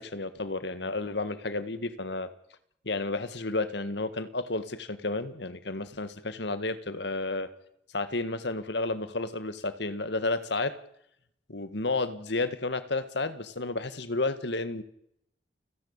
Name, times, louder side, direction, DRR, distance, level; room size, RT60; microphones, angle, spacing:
voice 1, 0.0-2.3 2.9-7.5 7.9-10.8 11.5-14.8, left 2 dB, 65° left, 13 dB, 1.8 m, -31 dB
30.0 x 10.5 x 8.9 m, 0.73 s
head